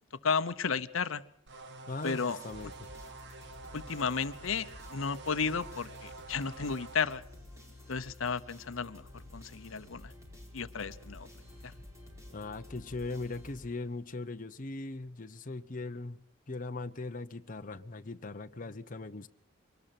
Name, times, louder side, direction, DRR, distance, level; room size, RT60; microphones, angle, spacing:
voice 1, 0.2-1.2 2.0-2.4 3.7-7.2 7.9-9.1 9.3-10.1 10.5-11.3 11.6-11.7, left 5 dB, 75° left, 0.8 m, -33 dB
sound 1, 1.5-7.0, right 3 dB, 60° right, 1.8 m, -48 dB
voice 2, 1.9-2.7 12.3-19.3, left 3 dB, 40° left, 0.8 m, -40 dB
sound 2, 2.0-14.1, left 1 dB, 15° right, 5.3 m, -51 dB
24.0 x 19.0 x 5.9 m
head